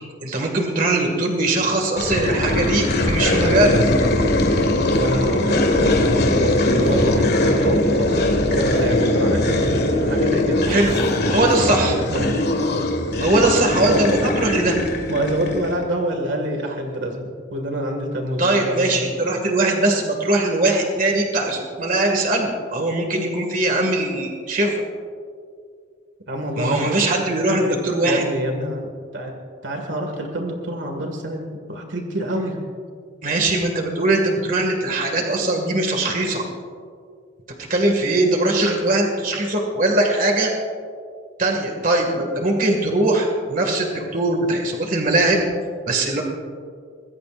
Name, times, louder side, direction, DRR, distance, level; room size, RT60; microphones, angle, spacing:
voice 1, 0.2-3.8 10.7-11.0 11.3-11.9 13.2-14.7 18.4-24.7 26.6-28.2 33.2-36.4 37.7-40.5 41.4-45.5 45.9-46.2, right 2 dB, 45° right, 2 dB, 2.2 m, -20 dB
sound 1, 2.0-15.8, left 1 dB, 55° left, 1.8 m, -20 dB
sound 2, 3.0-12.4, equal, 5° right, 5.2 m, -37 dB
voice 2, 4.9-10.7 11.4-12.4 13.8-14.4 15.1-19.1 26.3-27.0 27.6-27.8 28.0-29.3 29.6-32.6, right 1 dB, 70° right, 3 dB, 2.1 m, -27 dB
24.5 x 20.5 x 2.6 m, 2.2 s
head